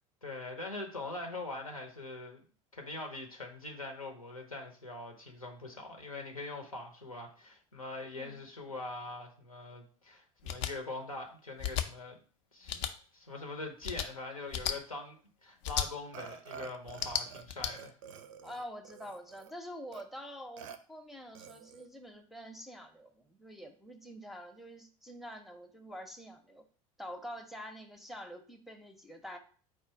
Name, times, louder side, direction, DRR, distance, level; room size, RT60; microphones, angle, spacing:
voice 1, 0.2-2.4 2.7-12.2 12.5-15.2 15.4-17.9, left 2 dB, 90° left, 2 dB, 0.8 m, -43 dB
sound 1, 10.4-10.7 11.6-11.9 12.7-12.9 13.8-14.1 14.5-14.7 15.6-15.9 16.9-17.7, left 9 dB, 55° left, 0.5 m, -33 dB
Burping eructation, 16.1-17.4 17.7-19.5 19.9-20.0 20.6-20.8 21.3-21.9, right 7 dB, 65° right, 0.4 m, -48 dB
voice 2, 18.4-26.6 27.0-29.4, equal, ahead, 6 dB, 0.6 m, -46 dB
4.5 x 2.4 x 4.5 m, 0.41 s
figure-of-eight pair, 70°, 18 cm